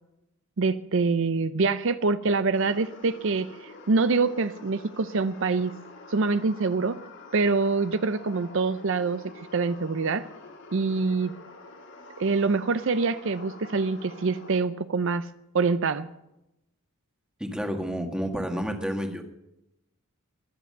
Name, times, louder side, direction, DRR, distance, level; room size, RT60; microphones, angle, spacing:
voice 1, 0.6-5.7 6.1-7.0 7.3-9.2 9.5-10.3 10.7-11.3 12.2-15.3 15.5-16.1, right 4 dB, 60° right, 13 dB, 0.6 m, -25 dB
sound 1, 2.5-14.6, left 2 dB, 55° left, 2.2 m, -47 dB
voice 2, 17.4-19.2, equal, 5° right, 4 dB, 1.7 m, -30 dB
22.5 x 7.8 x 6.6 m, 0.87 s
head